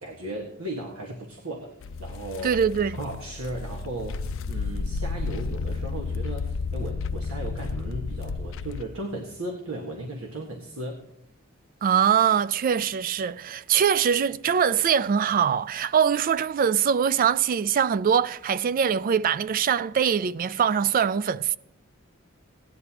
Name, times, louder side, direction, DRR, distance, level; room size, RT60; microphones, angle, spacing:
voice 1, 0.0-1.7 2.0-2.5 2.9-11.0, right 1 dB, 85° right, 1.6 m, -36 dB
sound 1, 1.8-8.8, left 4 dB, 65° left, 0.5 m, -32 dB
voice 2, 2.4-3.0 11.8-21.6, right 7 dB, 40° right, 0.3 m, -23 dB
17.5 x 10.5 x 2.9 m
head